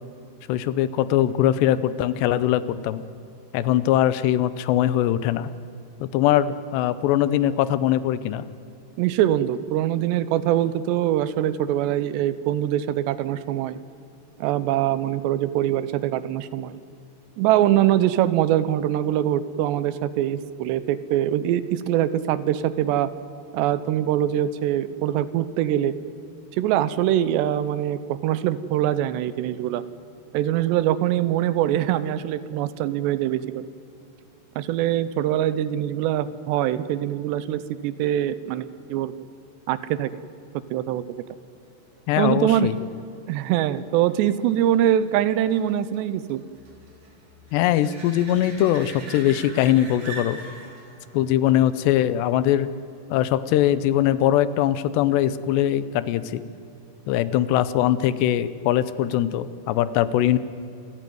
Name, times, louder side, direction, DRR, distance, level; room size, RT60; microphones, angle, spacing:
voice 1, 0.5-3.0 3.5-5.5 6.0-8.5 42.1-42.8 47.5-50.4 51.1-52.7 53.1-56.4 57.1-60.4, left 12 dB, 85° left, 15 dB, 2.9 m, -21 dB
voice 2, 9.0-13.8 14.4-16.8 17.4-23.1 23.5-25.9 26.6-29.8 30.3-33.7 34.6-39.3 39.7-40.1 40.7-41.1 42.2-42.7 43.3-46.4, right 12 dB, 85° right, 14 dB, 3.0 m, -23 dB
sound 1, 41.9-53.2 58.8-58.9, right 2 dB, 40° right, 4.8 m, -44 dB
27.5 x 14.0 x 9.4 m, 2.6 s
omnidirectional pair, 4.9 m